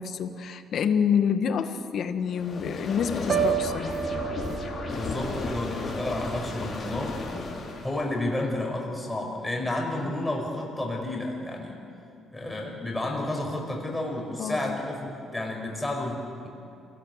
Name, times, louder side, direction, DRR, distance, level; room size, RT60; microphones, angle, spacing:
voice 1, 0.0-4.0 14.4-14.8, left 7 dB, 55° left, 9 dB, 1.4 m, -27 dB
sound 1, 2.3-8.1, left 3 dB, 35° left, 4.4 m, -34 dB
Piano, 3.3-7.2 7.6-8.0, right 10 dB, 40° right, 1.5 m, -32 dB
voice 2, 4.9-7.2 7.8-11.8 12.3-16.5, left 1 dB, 10° left, 0 dB, 5.2 m, -31 dB
27.5 x 18.0 x 8.0 m, 2.7 s
cardioid pair, 125°, 0 cm